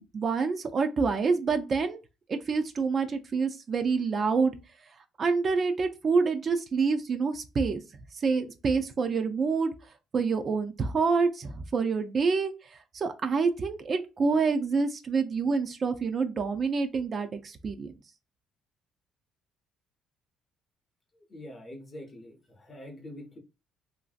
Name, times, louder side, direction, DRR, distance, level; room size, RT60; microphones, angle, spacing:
voice 1, 0.0-2.0 2.3-4.5 5.2-7.8 8.1-9.7 10.1-17.9, right 4 dB, 35° right, 0.4 m, -27 dB
voice 2, 21.3-23.4, left 1 dB, 25° left, 0.7 m, -44 dB
2.9 x 2.6 x 2.4 m
cardioid pair, 125°, 0 cm